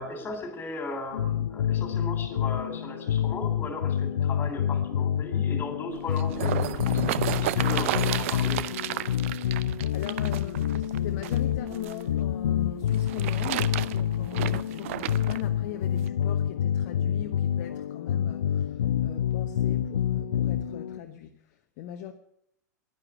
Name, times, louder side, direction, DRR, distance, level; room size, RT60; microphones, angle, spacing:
voice 1, 0.0-9.0, left 2 dB, 20° left, 3.5 m, -37 dB
sound 1, 1.1-21.0, left 10 dB, 60° left, 0.7 m, -28 dB
sound 2, 5.9-12.0 12.9-15.4 16.1-16.2, right 14 dB, 50° right, 0.6 m, -32 dB
voice 2, 9.9-22.1, left 11 dB, 40° left, 1.0 m, -41 dB
11.0 x 11.0 x 9.7 m
figure-of-eight pair, 95°, 9 cm